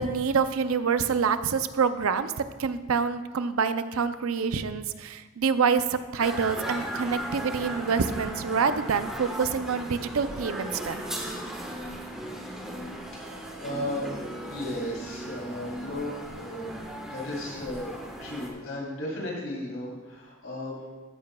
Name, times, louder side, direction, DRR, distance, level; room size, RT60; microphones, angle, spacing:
voice 1, 0.0-2.3 2.6-11.0, right 5 dB, 90° right, 11 dB, 0.5 m, -26 dB
sound 1, 6.2-18.5, right 1 dB, 5° right, 1.3 m, -37 dB
voice 2, 13.2-14.1 14.4-16.8 17.1-20.9, left 1 dB, 85° left, -3 dB, 3.2 m, -35 dB
14.0 x 9.5 x 2.3 m, 1.3 s
head